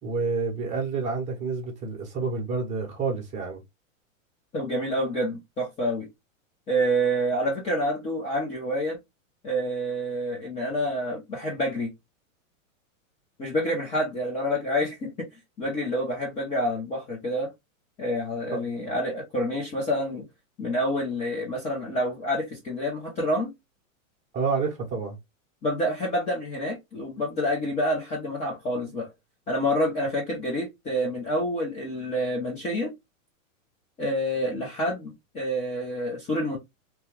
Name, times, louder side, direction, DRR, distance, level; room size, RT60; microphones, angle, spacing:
voice 1, 0.0-3.6 18.5-18.6 24.3-25.2, right 4 dB, 15° right, 0.9 m, -29 dB
voice 2, 4.5-6.1 6.7-9.0 9.4-11.9 13.4-15.1 15.6-17.5 18.0-20.2 20.6-23.5 25.6-29.1 29.5-32.9 34.0-36.6, equal, 15° left, 0.6 m, -28 dB
2.8 x 2.2 x 3.2 m
hypercardioid pair, 150°, 41 cm